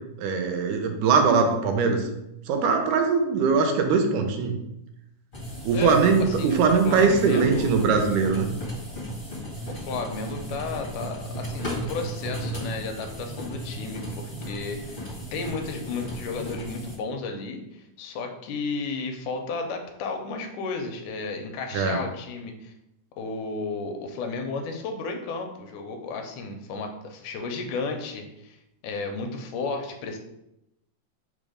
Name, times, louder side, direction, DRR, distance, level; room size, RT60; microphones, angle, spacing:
voice 1, 0.2-2.0 2.5-4.6 5.6-8.5 21.7-22.0, right 5 dB, 85° right, 5 dB, 2.1 m, -21 dB
sound 1, 5.3-17.0, right 1 dB, 60° left, 0.5 m, -35 dB
voice 2, 5.7-6.6 6.8-7.7 9.7-22.7 23.2-28.6 28.8-30.2, left 4 dB, 80° left, 4 dB, 2.1 m, -33 dB
5.2 x 2.1 x 4.8 m, 0.85 s
omnidirectional pair, 3.7 m